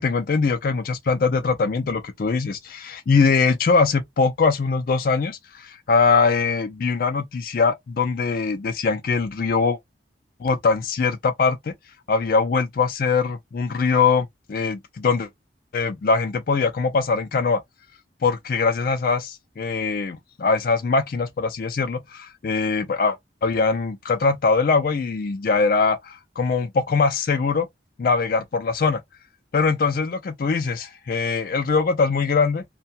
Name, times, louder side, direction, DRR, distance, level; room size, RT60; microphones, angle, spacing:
voice 1, 0.0-9.8 10.4-11.7 12.1-15.3 15.7-17.6 18.2-27.7 28.0-29.0 29.5-32.6, left 4 dB, 50° left, 0.4 m, -22 dB
2.7 x 2.2 x 2.7 m
head